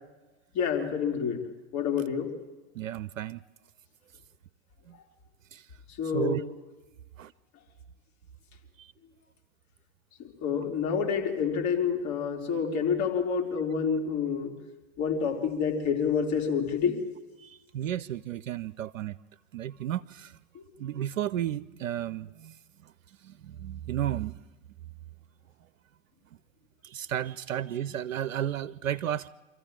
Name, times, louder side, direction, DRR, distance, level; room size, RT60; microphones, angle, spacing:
voice 1, 0.5-1.4 1.7-2.3 6.0-6.4 10.2-14.6 15.0-17.0 20.5-20.6, left 6 dB, 45° left, 2 dB, 3.7 m, -28 dB
voice 2, 2.7-3.4 4.9-5.0 5.5-5.7 6.1-6.4 7.2-7.3 8.8-8.9 17.4-19.2 19.5-20.3 20.8-22.6 22.8-22.9 23.2-24.4 26.8-29.3, right 11 dB, 80° right, 16 dB, 0.6 m, -33 dB
25.5 x 14.0 x 8.9 m, 1.2 s
hypercardioid pair, 90°, 39 cm